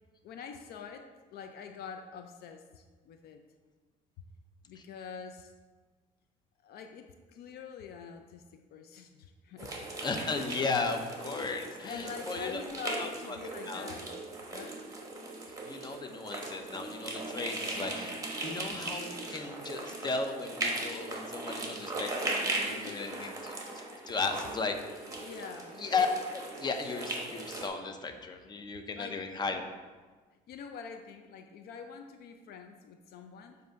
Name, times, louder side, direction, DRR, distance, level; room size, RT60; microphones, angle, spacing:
voice 1, 0.2-3.4 4.7-5.5 6.6-9.8 11.3-14.2 14.5-14.8 22.8-23.3 25.2-25.8 28.9-29.2 30.5-33.6, left 6 dB, 70° left, 6 dB, 0.5 m, -45 dB
sound 1, 9.6-27.7, right 2 dB, 20° right, 1.1 m, -38 dB
voice 2, 10.0-12.6 13.0-13.4 13.7-13.9 15.6-24.8 25.8-29.6, left 4 dB, 25° left, 6 dB, 0.6 m, -35 dB
7.7 x 2.7 x 5.1 m, 1.4 s
cardioid pair, 110°, 17 cm